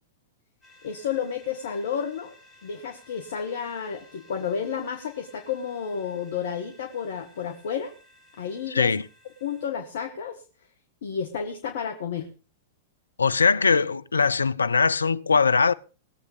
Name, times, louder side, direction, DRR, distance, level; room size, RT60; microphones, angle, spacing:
sound 1, 0.6-9.7, left 1 dB, 15° left, 5.4 m, -56 dB
voice 1, 0.8-2.3 2.6-7.9 8.4-8.9 9.4-10.4 11.0-12.3, left 7 dB, 65° left, 1.7 m, -31 dB
voice 2, 8.7-9.0 13.2-15.7, left 5 dB, 85° left, 0.6 m, -21 dB
20.0 x 8.0 x 5.2 m
figure-of-eight pair, 100°, 0 cm